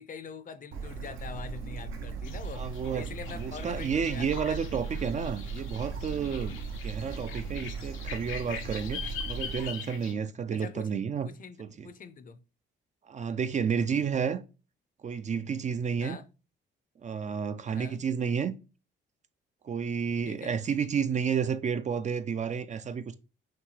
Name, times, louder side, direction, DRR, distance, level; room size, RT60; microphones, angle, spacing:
voice 1, 0.0-4.6 10.5-12.4 16.0-16.3 17.7-18.0 20.3-20.6, left 5 dB, 45° left, 0.6 m, -44 dB
Bird / Stream, 0.7-9.6, right 4 dB, 80° right, 1.1 m, -38 dB
sound 1, 2.2-10.1, left 7 dB, 85° left, 0.8 m, -43 dB
voice 2, 2.5-3.1 3.4-11.3 11.6-11.9 13.1-14.4 15.0-16.2 17.0-18.6 19.6-23.1, right 6 dB, 35° right, 0.4 m, -31 dB
5.9 x 2.3 x 3.2 m
cardioid pair, 90°, 20 cm